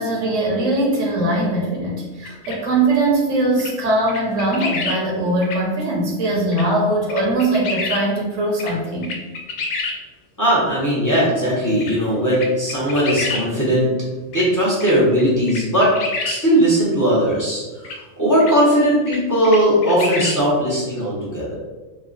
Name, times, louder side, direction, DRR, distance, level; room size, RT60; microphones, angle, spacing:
voice 1, 0.0-9.1, right 2 dB, 75° right, -2 dB, 1.2 m, -21 dB
sound 1, 2.3-2.6 3.6-3.7 4.1-5.0 5.4-5.6 6.5-6.6 7.1-8.0 8.6-8.7 9.0-10.0 11.1-11.2 11.8-11.9 12.3-13.4 14.3-14.5 14.8-15.2 15.5-16.4 17.8-18.0 18.4-18.5 19.1-19.2 19.4-20.4, left 3 dB, 85° left, 1.0 m, -27 dB
voice 2, 10.4-13.9 14.3-15.9 16.2-21.6, equal, 15° left, -7 dB, 0.8 m, -18 dB
3.2 x 2.2 x 3.8 m, 1.2 s
omnidirectional pair, 1.3 m